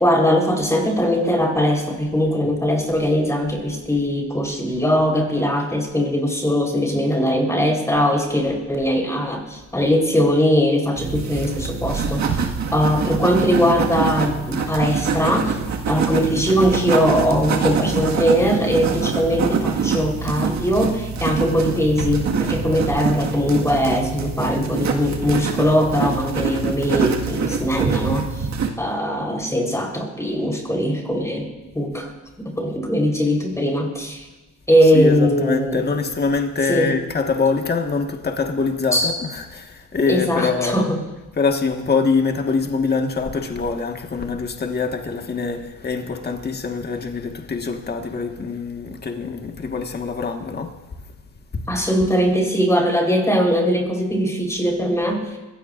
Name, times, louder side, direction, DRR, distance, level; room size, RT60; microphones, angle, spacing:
voice 1, 0.0-12.5 12.7-15.6 15.9-28.4 28.8-32.1 32.4-34.2 34.7-35.8 36.7-36.9 38.9-39.1 40.1-41.0 51.7-55.3, equal, 10° left, 4.0 m, -20 dB
sound 1, 11.0-28.7, right 5 dB, 65° right, 1.8 m, -25 dB
voice 2, 34.8-40.9 41.3-50.7 51.5-51.6, left 4 dB, 35° left, 1.6 m, -24 dB
26.0 x 16.5 x 2.6 m
cardioid pair, 90°, 30 cm